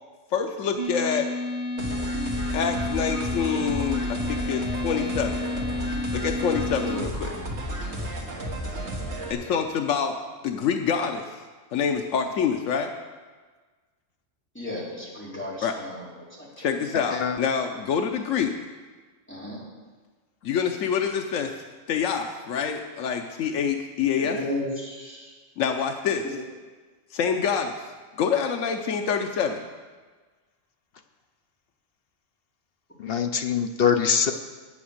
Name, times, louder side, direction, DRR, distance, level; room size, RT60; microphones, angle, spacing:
voice 1, 0.3-1.3 2.5-5.4 6.1-7.3 9.3-10.2 10.4-11.4 11.7-12.9 15.6-15.8 16.6-18.6 20.4-21.6 21.9-24.4 25.6-26.3 27.1-27.8 28.2-29.6, left 7 dB, 85° left, 3 dB, 1.1 m, -26 dB
sound 1, 0.8-7.0, left 2 dB, 35° right, 1.2 m, -31 dB
sound 2, 1.8-9.3, right 1 dB, 65° right, 2.0 m, -32 dB
voice 2, 14.5-16.1 16.4-16.7 19.3-19.6 24.2-25.3, left 1 dB, 10° left, -7 dB, 3.2 m, -34 dB
voice 3, 16.9-17.4 33.0-34.3, left 7 dB, 55° left, 7 dB, 0.8 m, -23 dB
8.7 x 8.6 x 6.5 m, 1.4 s
omnidirectional pair, 1.3 m